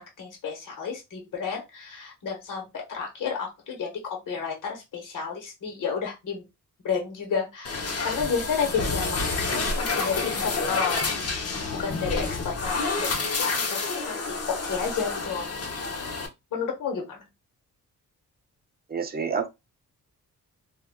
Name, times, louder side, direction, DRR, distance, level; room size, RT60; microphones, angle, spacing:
voice 1, 0.0-6.4 6.8-11.0 11.5-13.8 14.1-15.5 16.5-17.2, left 6 dB, 65° left, 1.1 m, -31 dB
sound 1, 7.6-16.3, left 3 dB, 45° left, 0.8 m, -29 dB
voice 2, 18.9-19.5, right 6 dB, 25° right, 0.5 m, -28 dB
3.3 x 2.4 x 2.2 m
cardioid pair, 110°, 34 cm